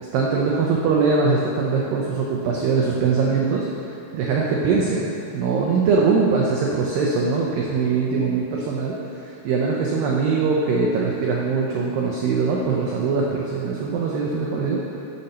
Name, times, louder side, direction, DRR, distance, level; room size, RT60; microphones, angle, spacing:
voice 1, 0.1-3.7 4.1-9.0 9.4-14.8, right 4 dB, 80° right, -2 dB, 2.0 m, -22 dB
11.5 x 5.4 x 4.2 m, 2.7 s
omnidirectional pair, 4.9 m